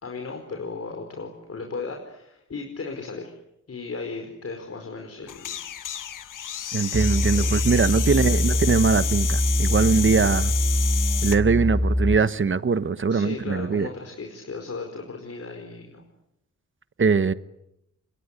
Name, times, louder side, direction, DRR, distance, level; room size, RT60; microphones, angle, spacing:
voice 1, 0.0-3.3 3.7-5.6 7.3-7.5 8.1-8.3 13.1-16.1, left 4 dB, 50° left, 4.8 m, -36 dB
sound 1, 5.3-11.4, left 9 dB, 90° left, 1.5 m, -31 dB
voice 2, 6.7-10.5 11.2-13.9 17.0-17.3, right 5 dB, 40° right, 1.2 m, -22 dB
sound 2, 6.9-12.2, left 1 dB, ahead, 2.4 m, -23 dB
29.0 x 24.5 x 8.3 m
cardioid pair, 90°, 31 cm